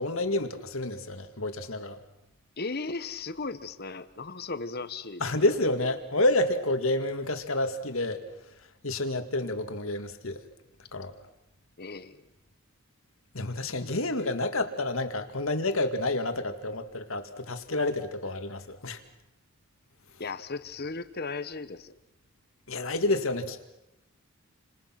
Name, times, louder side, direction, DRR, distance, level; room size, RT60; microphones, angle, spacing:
voice 1, 0.0-2.0 5.2-8.2 8.8-10.4 10.9-11.1 13.3-19.0 22.7-23.6, left 2 dB, 65° left, 8 dB, 2.1 m, -29 dB
voice 2, 2.6-5.2 11.8-12.3 20.2-21.9, left 3 dB, 45° left, 11 dB, 1.3 m, -36 dB
29.5 x 26.0 x 6.0 m, 0.90 s
head